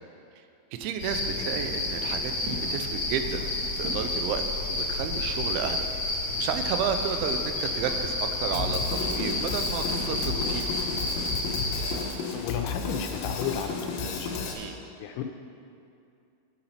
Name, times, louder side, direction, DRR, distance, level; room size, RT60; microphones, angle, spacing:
voice 1, 0.7-3.4 3.8-4.4 4.7-5.9 6.4-10.7 14.6-14.8, right 8 dB, 85° right, 7 dB, 3.0 m, -32 dB
sound 1, 1.0-11.9, left 2 dB, 45° left, 3.3 m, -30 dB
sound 2, 1.6-4.6 4.9-11.2, right 1 dB, 60° right, 1.2 m, -44 dB
Drum kit, 8.5-14.5, left 4 dB, 65° left, 2.9 m, -33 dB
voice 2, 12.3-13.8 14.0-14.4 15.0-15.2, left 8 dB, 85° left, 5 dB, 3.1 m, -33 dB
10.5 x 8.9 x 5.7 m, 2.5 s
omnidirectional pair, 5.6 m